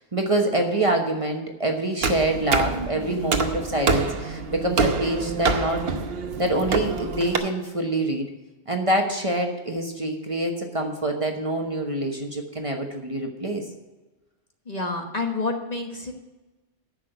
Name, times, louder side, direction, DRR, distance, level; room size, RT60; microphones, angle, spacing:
voice 1, 0.0-5.8 6.4-8.3 8.7-13.6, right 1 dB, 30° right, 2 dB, 1.2 m, -25 dB
sound 1, 2.0-7.4, right 4 dB, 65° right, 1.1 m, -26 dB
voice 2, 14.6-16.1, left 3 dB, 35° left, 3 dB, 1.3 m, -28 dB
10.0 x 6.5 x 8.0 m, 1.1 s
omnidirectional pair, 1.1 m